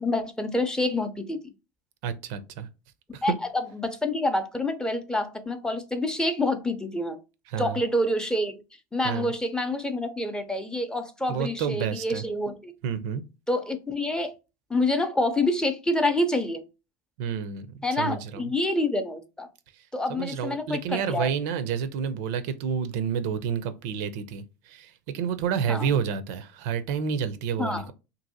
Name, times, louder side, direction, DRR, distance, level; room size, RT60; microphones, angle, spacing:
voice 1, 0.0-1.4 3.2-7.2 7.6-8.6 8.9-12.7 13.5-14.3 14.7-16.6 17.8-19.5 19.9-21.3 25.7-25.9 27.6-27.9, left 1 dB, 5° left, 0.5 m, -27 dB
voice 2, 2.0-2.7 3.1-3.2 7.5-7.8 9.0-9.3 11.3-12.2 12.8-13.2 17.2-18.4 20.1-27.9, right 7 dB, 65° right, 0.4 m, -29 dB
2.7 x 2.6 x 2.6 m
supercardioid pair, 100°, 10 cm